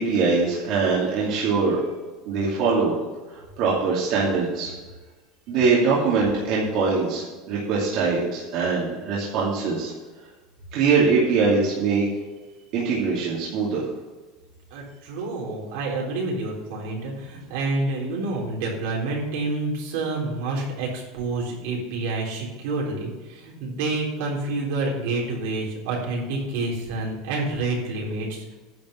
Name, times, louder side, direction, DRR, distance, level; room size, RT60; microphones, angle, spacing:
voice 1, 0.0-1.8 2.2-2.9 3.3-4.7 5.5-9.9 10.7-12.1 12.7-13.9, right 4 dB, 50° right, -5 dB, 2.6 m, -22 dB
voice 2, 14.7-28.5, right 2 dB, 75° right, -2 dB, 3.8 m, -28 dB
10.5 x 5.4 x 8.3 m, 1.2 s
cardioid pair, 160°, 0 cm